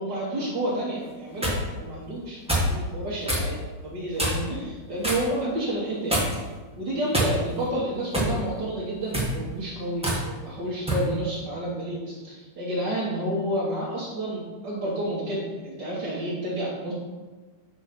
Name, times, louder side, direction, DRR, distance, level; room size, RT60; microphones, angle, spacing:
voice 1, 0.0-2.4 2.7-3.6 3.8-6.2 6.8-17.0, right 1 dB, 45° right, -9 dB, 1.8 m, -30 dB
sound 1, 1.0-1.6 2.5-2.7 3.3-3.5 4.2-4.5 5.0-5.3 6.1-6.5 7.1-7.6 8.1-8.4 9.0-9.3 10.0-10.2 10.9-11.1, right 1 dB, 10° right, 0.3 m, -25 dB
6.2 x 5.0 x 5.9 m, 1.3 s
omnidirectional pair, 3.5 m